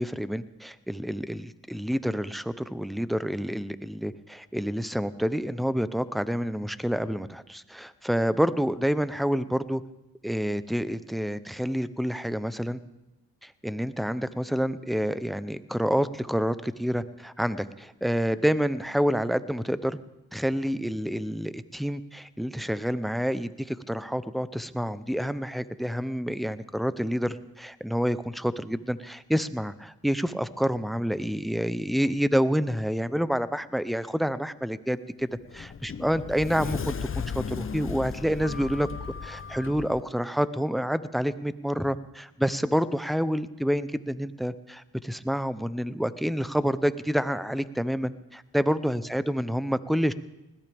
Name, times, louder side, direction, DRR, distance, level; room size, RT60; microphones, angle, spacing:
voice 1, 0.0-9.8 10.2-12.8 13.4-20.0 20.3-35.3 35.5-38.9 39.2-50.1, equal, ahead, 14 dB, 0.7 m, -28 dB
Sliding door, 35.2-40.0, left 6 dB, 35° left, 0.7 m, -36 dB
20.5 x 17.0 x 3.5 m, 0.98 s
cardioid pair, 80°, 37 cm